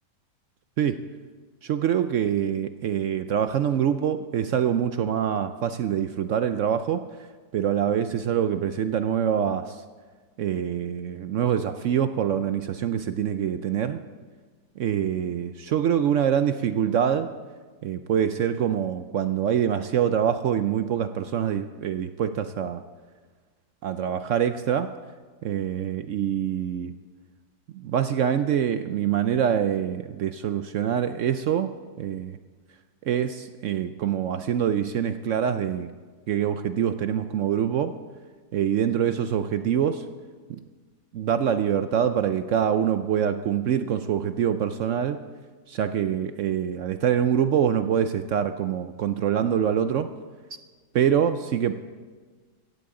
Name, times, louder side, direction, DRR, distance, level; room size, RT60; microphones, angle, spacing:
voice 1, 1.6-7.0 7.5-9.8 10.4-14.0 14.8-17.3 17.8-22.8 23.8-24.9 25.4-26.9 27.7-32.4 33.1-35.9 36.3-37.9 38.5-40.1 40.5-40.6 41.1-45.2 45.7-50.1 50.9-51.8, right 9 dB, 70° right, 10 dB, 0.7 m, -25 dB
16.5 x 15.5 x 3.7 m, 1.4 s
omnidirectional pair, 1.7 m